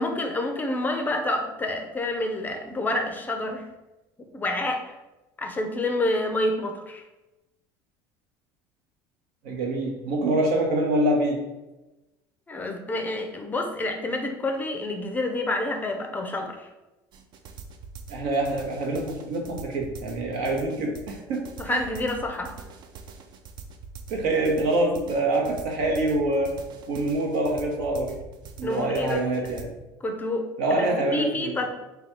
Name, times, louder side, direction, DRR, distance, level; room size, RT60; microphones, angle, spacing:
voice 1, 0.0-3.6 4.3-4.8 5.4-7.0 12.5-16.7 21.6-22.5 28.6-29.2 30.0-31.7, left 2 dB, 20° left, 4 dB, 0.5 m, -28 dB
voice 2, 9.4-11.4 18.1-21.8 24.1-26.6 26.9-28.2 28.6-29.7 30.6-31.6, right 1 dB, 80° right, 0 dB, 1.0 m, -25 dB
sound 1, 17.1-29.6, right 5 dB, 50° right, 0.4 m, -43 dB
3.3 x 2.3 x 4.2 m, 1.0 s
supercardioid pair, 115°, 10 cm